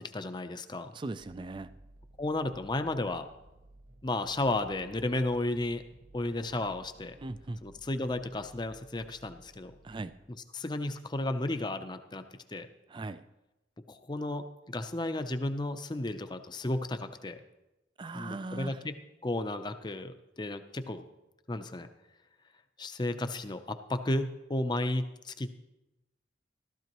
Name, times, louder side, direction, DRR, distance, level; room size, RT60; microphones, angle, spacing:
voice 1, 0.0-0.9 2.2-3.3 4.0-5.8 6.1-7.2 7.6-9.7 10.5-12.7 13.9-17.4 18.1-18.9 19.2-21.0 21.5-21.9 22.8-25.5, left 2 dB, 25° left, 9 dB, 0.6 m, -33 dB
voice 2, 0.9-1.7 7.2-7.6 9.8-10.1 12.9-13.3 18.0-18.8, right 2 dB, 25° right, 13 dB, 0.4 m, -39 dB
sound 1, 1.2-10.1, right 1 dB, 50° right, 1.4 m, -56 dB
14.5 x 13.0 x 3.0 m, 0.99 s
head